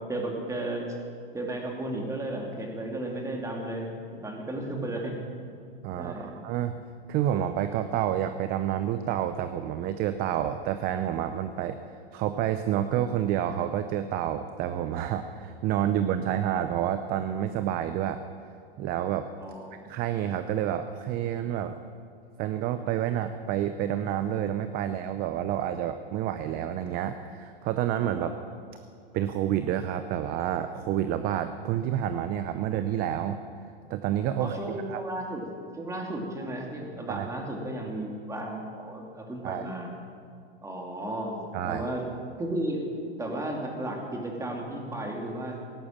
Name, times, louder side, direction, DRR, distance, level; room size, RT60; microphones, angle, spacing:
voice 1, 0.1-1.0 1.3-3.9 4.2-5.2 6.0-6.4 16.2-16.3 19.4-19.8 28.2-28.3 34.4-35.4 35.7-39.9 40.6-41.4 41.6-42.1 42.4-42.9 43.2-45.7, right 1 dB, 10° right, 0 dB, 2.7 m, -34 dB
voice 2, 5.8-6.7 7.1-11.8 12.1-18.2 18.8-19.3 19.8-21.8 22.4-28.3 29.1-33.4 33.9-35.0 37.1-37.3 39.4-39.6 41.5-41.9, right 10 dB, 30° right, 10 dB, 0.6 m, -29 dB
17.0 x 11.0 x 7.4 m, 2.3 s
hypercardioid pair, 130°, 31 cm